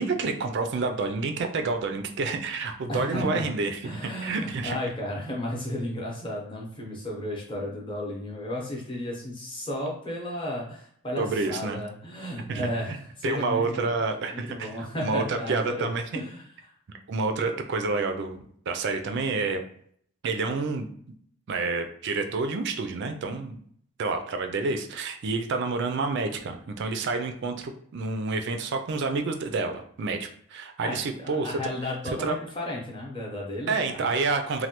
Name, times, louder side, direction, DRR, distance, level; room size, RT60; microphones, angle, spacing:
voice 1, 0.0-4.8 11.2-11.8 12.5-13.0 13.2-14.7 15.0-16.2 17.1-19.6 20.2-20.9 21.5-23.6 24.0-31.5 32.1-32.4 33.7-34.7, right 3 dB, 50° right, 6 dB, 0.3 m, -29 dB
voice 2, 2.9-3.4 3.8-13.8 14.3-16.7 30.8-34.1, left 1 dB, 20° left, -2 dB, 0.7 m, -34 dB
3.2 x 2.2 x 2.9 m, 0.64 s
head